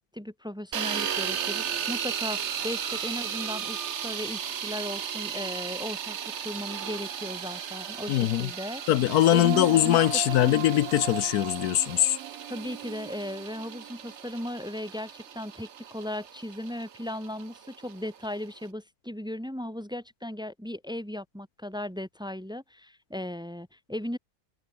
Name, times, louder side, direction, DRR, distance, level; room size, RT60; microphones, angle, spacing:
voice 1, 0.0-6.2 6.4-8.8 9.3-10.0 10.3-10.6 12.5-24.2, left 1 dB, 5° right, 1.6 m, -36 dB
sound 1, 0.7-18.7, right 8 dB, 50° right, 1.2 m, -36 dB
voice 2, 8.1-8.5 8.9-12.2, left 13 dB, 75° left, 1.1 m, -22 dB
Female singing, 9.0-14.2, right 13 dB, 70° right, 1.1 m, -38 dB
omnidirectional pair, 1.7 m